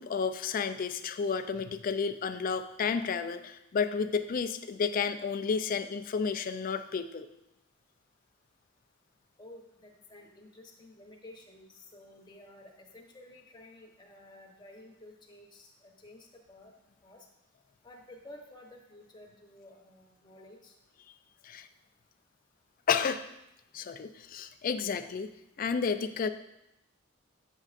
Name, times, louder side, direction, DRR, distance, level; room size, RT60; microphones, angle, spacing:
voice 1, 0.0-7.3 21.4-21.7 22.9-23.2 23.7-25.3 25.6-26.3, left 5 dB, 45° left, 10 dB, 0.3 m, -31 dB
voice 2, 9.4-16.7 17.0-17.3 17.8-20.8, left 1 dB, 20° left, 0 dB, 0.9 m, -52 dB
8.5 x 6.3 x 2.5 m, 0.86 s
head